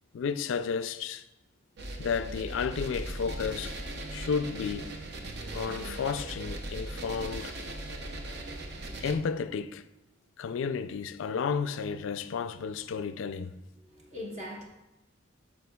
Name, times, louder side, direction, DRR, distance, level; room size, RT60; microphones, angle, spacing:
voice 1, 0.1-1.2 2.0-3.8 4.1-4.9 5.5-7.5 9.0-9.8 10.4-13.5, left 6 dB, 70° left, 0.3 m, -32 dB
sound 1, 1.8-9.1, right 1 dB, 50° right, 0.6 m, -39 dB
voice 2, 13.8-14.6, left 1 dB, 35° right, 1.1 m, -41 dB
9.3 x 6.2 x 2.3 m
head